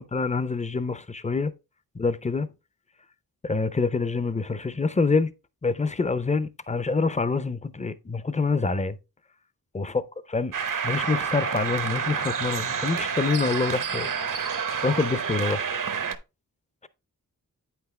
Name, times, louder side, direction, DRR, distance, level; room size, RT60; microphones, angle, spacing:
voice 1, 0.0-1.5 1.9-2.5 3.4-5.3 5.6-9.0 9.7-10.0 10.3-10.5 10.8-14.1 14.8-15.7, left 4 dB, 20° left, 0.6 m, -26 dB
sound 1, 10.5-16.1, right 6 dB, 60° right, 0.9 m, -29 dB
8.6 x 5.9 x 3.2 m
wide cardioid pair, 80°, 35 cm